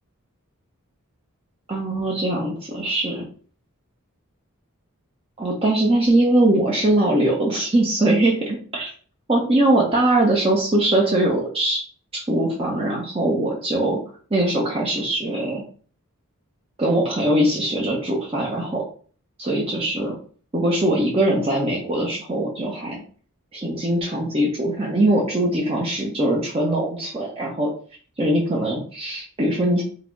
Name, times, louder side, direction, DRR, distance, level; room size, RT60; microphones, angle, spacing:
voice 1, 1.7-3.2 5.4-8.9 9.3-11.8 12.1-14.0 14.3-15.6 16.8-18.8 19.4-20.2 20.5-23.0 23.5-27.7 28.2-29.8, right 1 dB, 25° right, -2 dB, 0.7 m, -21 dB
4.3 x 2.0 x 4.4 m, 0.44 s
head